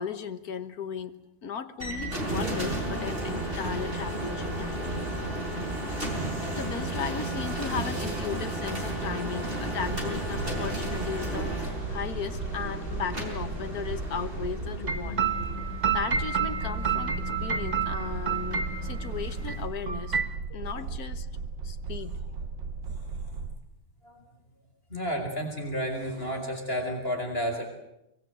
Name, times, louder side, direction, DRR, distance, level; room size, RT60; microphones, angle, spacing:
voice 1, 0.0-5.0 6.6-15.2 15.9-20.2 20.5-21.3 21.6-22.2, left 7 dB, 50° left, 10 dB, 1.7 m, -36 dB
sound 1, 1.8-19.7, right 1 dB, 25° right, 5.4 m, -33 dB
sound 2, 9.9-23.6, right 5 dB, 60° right, 1.8 m, -37 dB
sound 3, 14.9-19.1 19.5-19.6 19.9-20.4, right 7 dB, 40° right, 0.6 m, -29 dB
voice 2, 22.9-23.3 24.0-24.2 24.9-27.7, equal, 25° left, 2 dB, 5.0 m, -32 dB
24.0 x 23.5 x 8.0 m, 0.84 s
omnidirectional pair, 2.3 m